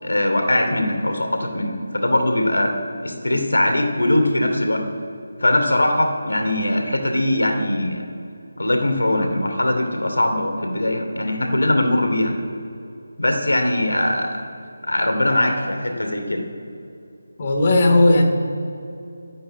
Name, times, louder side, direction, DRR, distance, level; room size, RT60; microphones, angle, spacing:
voice 1, 0.0-2.7 3.0-4.8 5.4-8.0 8.6-12.4 13.2-14.4 14.8-16.5, left 1 dB, 85° left, 4 dB, 2.6 m, -21 dB
voice 2, 17.4-18.2, left 2 dB, 35° left, 1 dB, 2.6 m, -15 dB
14.5 x 8.8 x 10.0 m, 2.6 s
figure-of-eight pair, 160°, 0 cm